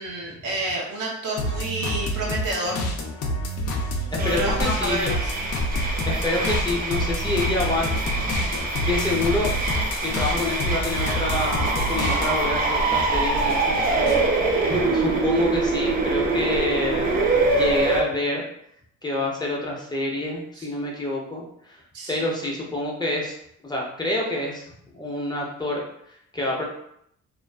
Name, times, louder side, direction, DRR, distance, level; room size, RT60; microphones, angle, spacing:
voice 1, 0.0-2.9 4.2-5.3 20.6-20.7 21.9-22.2, right 1 dB, 85° right, -2 dB, 0.8 m, -29 dB
sound 1, 1.4-12.6 12.9-14.3, equal, 55° left, 0.5 m, -29 dB
voice 2, 4.1-5.1 6.0-7.9 8.2-9.5 10.0-18.4 19.0-21.8 22.1-23.4 23.6-24.6 24.9-25.8 26.3-26.6, left 2 dB, 15° left, -3 dB, 0.6 m, -27 dB
sound 2, 4.2-18.0, right 3 dB, 30° right, 0.4 m, -24 dB
2.5 x 2.3 x 2.2 m, 0.73 s
cardioid pair, 90°, 30 cm